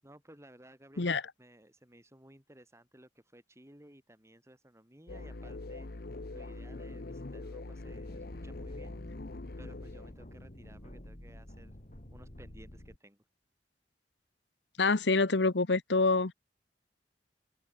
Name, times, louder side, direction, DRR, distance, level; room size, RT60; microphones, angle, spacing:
voice 1, 0.0-5.9 6.3-9.0 9.6-11.7 12.1-13.2, right 1 dB, 15° right, 7.7 m, -57 dB
sound 1, 5.1-10.1, left 2 dB, 60° left, 0.9 m, -43 dB
sound 2, 7.7-13.0, left 1 dB, 45° left, 3.0 m, -50 dB
voice 2, 14.8-16.3, left 3 dB, 80° left, 1.1 m, -26 dB
open air
head